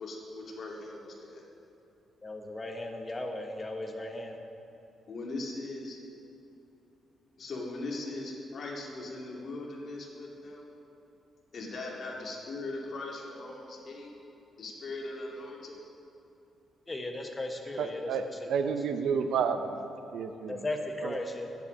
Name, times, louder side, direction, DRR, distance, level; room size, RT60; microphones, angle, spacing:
voice 1, 0.0-1.4 5.1-6.0 7.4-10.7 11.5-14.1 14.6-15.8, left 2 dB, 50° left, -2 dB, 2.3 m, -39 dB
voice 2, 2.2-4.4 16.9-18.7 20.5-21.5, left 2 dB, 20° left, 4 dB, 1.2 m, -37 dB
voice 3, 17.8-18.2 18.5-19.8 20.1-20.5 21.0-21.1, right 6 dB, 85° right, 8 dB, 0.7 m, -30 dB
10.5 x 9.1 x 6.5 m, 2.9 s
cardioid pair, 110°, 0 cm